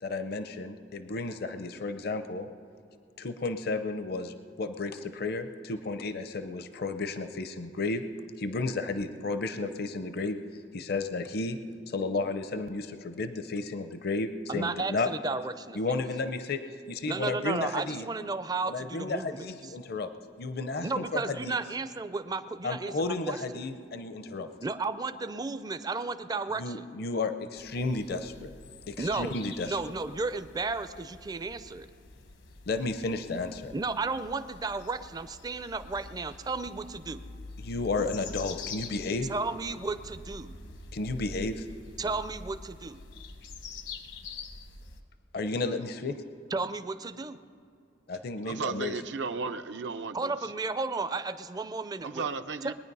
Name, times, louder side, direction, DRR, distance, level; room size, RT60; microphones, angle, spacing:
voice 1, 0.0-2.5 3.2-8.0 8.4-10.4 10.7-11.6 11.9-15.1 15.7-16.6 16.9-18.1 18.7-20.1 20.4-21.6 22.6-24.5 26.6-28.5 28.9-29.8 32.7-33.7 37.6-39.3 40.9-41.7 45.3-46.2 48.1-49.0, left 3 dB, 55° left, 9 dB, 0.6 m, -32 dB
voice 2, 14.5-16.0 17.0-19.7 20.8-23.4 24.6-26.9 29.0-29.3 29.6-31.9 33.7-37.2 39.3-40.6 42.0-43.0 46.5-47.4 50.1-52.2 52.6-52.7, right 3 dB, 20° right, 11 dB, 0.4 m, -33 dB
sound 1, 27.6-45.0, left 4 dB, 75° left, 1.0 m, -46 dB
voice 3, 48.5-50.3 52.0-52.7, right 4 dB, 70° right, 9 dB, 0.6 m, -34 dB
21.0 x 9.5 x 5.4 m, 2.4 s
head